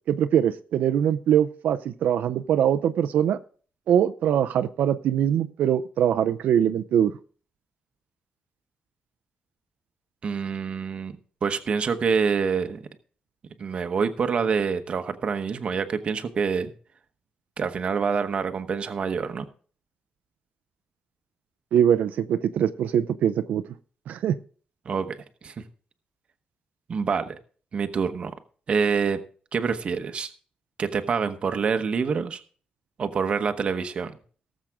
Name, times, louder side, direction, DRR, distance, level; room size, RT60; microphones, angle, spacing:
voice 1, 0.1-3.4 3.9-7.1 21.7-23.6 24.1-24.3, right 9 dB, 85° right, 10 dB, 0.6 m, -22 dB
voice 2, 10.2-12.9 13.6-16.7 17.6-19.4 24.8-25.6 26.9-27.4 27.7-28.3 28.7-29.2 29.5-30.3 30.8-32.4 33.0-34.1, right 5 dB, 40° right, 8 dB, 1.1 m, -26 dB
18.0 x 7.4 x 3.6 m, 0.42 s
wide cardioid pair, 165°, 3 cm